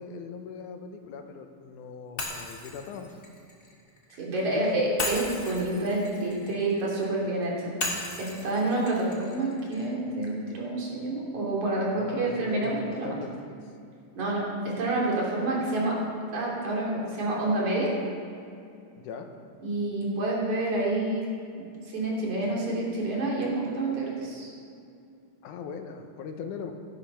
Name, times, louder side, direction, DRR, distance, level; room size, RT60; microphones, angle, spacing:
voice 1, 0.0-3.1 4.5-4.9 12.0-13.6 19.0-19.3 25.4-26.7, left 6 dB, 85° left, 5 dB, 2.4 m, -39 dB
Shatter, 2.2-4.2 5.0-7.1 7.8-9.9, left 2 dB, 30° left, 1.8 m, -36 dB
voice 2, 4.2-7.7 8.2-13.2 14.2-16.0 16.3-17.9 19.6-21.2 21.6-24.5, right 2 dB, 70° right, -4 dB, 4.5 m, -28 dB
15.0 x 12.5 x 5.7 m, 2.5 s
omnidirectional pair, 3.6 m